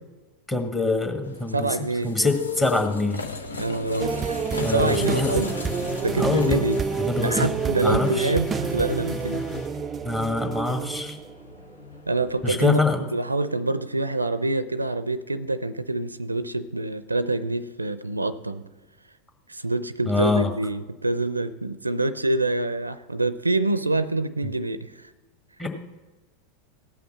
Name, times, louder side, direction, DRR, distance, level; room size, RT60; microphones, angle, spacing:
voice 1, 0.5-3.2 4.6-5.5 6.2-6.6 7.0-7.5 7.8-8.3 10.0-11.2 12.4-13.1 20.0-20.5 25.6-25.7, left 3 dB, 15° left, 4 dB, 1.7 m, -24 dB
sound 1, 1.2-12.7, left 5 dB, 80° left, 0.9 m, -38 dB
voice 2, 1.5-2.2 3.6-5.5 6.0-6.8 7.2-9.5 12.1-12.8 13.1-18.7 19.5-25.1, right 2 dB, 90° right, 15 dB, 0.5 m, -26 dB
sound 2, 4.0-12.0 12.4-12.6, right 6 dB, 20° right, 0.4 m, -29 dB
sound 3, 4.5-9.7, left 1 dB, 50° left, 2.7 m, -35 dB
16.5 x 5.7 x 7.3 m, 1.1 s
figure-of-eight pair, 90°, 0 cm